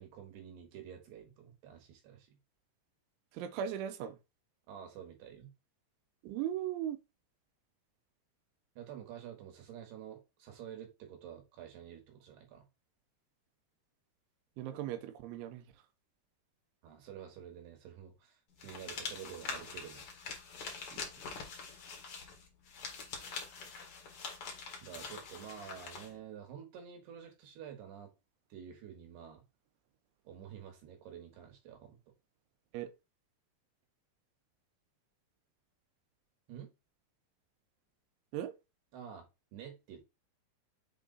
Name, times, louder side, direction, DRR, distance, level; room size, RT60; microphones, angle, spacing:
voice 1, 0.0-2.4 4.7-5.5 8.8-12.7 16.8-20.1 24.8-28.1 28.5-29.4 30.2-32.0 36.5-36.7 38.9-40.1, right 9 dB, 65° right, 3.4 m, -49 dB
voice 2, 3.3-4.2 6.2-7.0 14.6-15.6 20.9-21.0 32.7-32.9 38.3-38.5, right 10 dB, 85° right, 3.2 m, -38 dB
sound 1, 18.6-26.1, left 5 dB, 75° left, 1.2 m, -44 dB
7.4 x 3.3 x 4.0 m
omnidirectional pair, 5.4 m